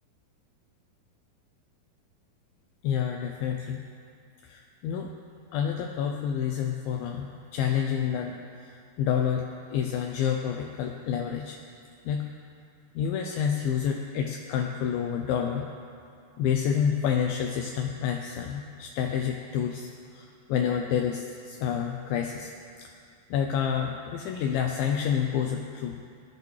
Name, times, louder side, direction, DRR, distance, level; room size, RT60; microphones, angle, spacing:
voice 1, 2.8-3.9 4.4-5.1 5.5-9.4 9.7-11.6 12.1-12.3 13.0-15.7 16.4-22.5 22.8-22.9 23.3-25.9, left 8 dB, 80° left, 2 dB, 2.3 m, -29 dB
19.0 x 11.5 x 3.3 m, 2.3 s
omnidirectional pair, 4.4 m